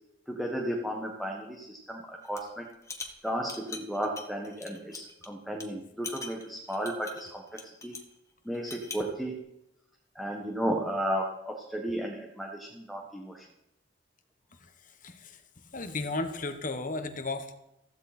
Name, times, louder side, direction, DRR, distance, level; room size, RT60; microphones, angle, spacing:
voice 1, 0.3-2.7 3.2-7.4 7.8-7.9 8.4-9.4 10.1-13.4, equal, ahead, 0 dB, 1.5 m, -34 dB
sound 1, 2.2-2.5 2.8-5.3 5.6-5.7 6.0-8.1 8.5-9.1, left 4 dB, 15° left, 1.6 m, -43 dB
voice 2, 14.8-15.4 15.7-17.5, left 2 dB, 45° left, 8 dB, 1.4 m, -34 dB
15.5 x 15.5 x 4.4 m, 0.87 s
head